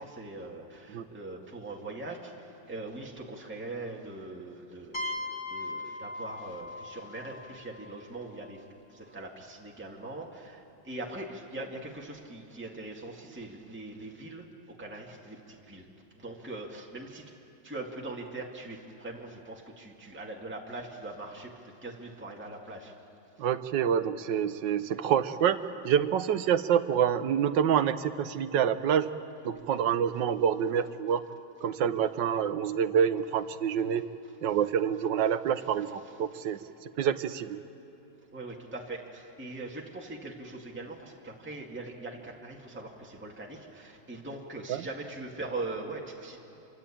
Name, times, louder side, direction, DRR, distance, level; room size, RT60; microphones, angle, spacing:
voice 1, 0.0-8.6 8.9-15.9 16.1-17.2 17.6-22.9 38.3-46.4, right 2 dB, 5° right, -1 dB, 2.1 m, -41 dB
sound 1, 4.9-8.6, left 2 dB, 25° left, 2.1 m, -39 dB
voice 2, 23.4-29.1 29.4-31.2 31.6-34.0 34.4-37.6 44.7-44.8, right 8 dB, 70° right, 12 dB, 1.5 m, -27 dB
27.0 x 24.5 x 8.7 m, 2.7 s
omnidirectional pair, 2.1 m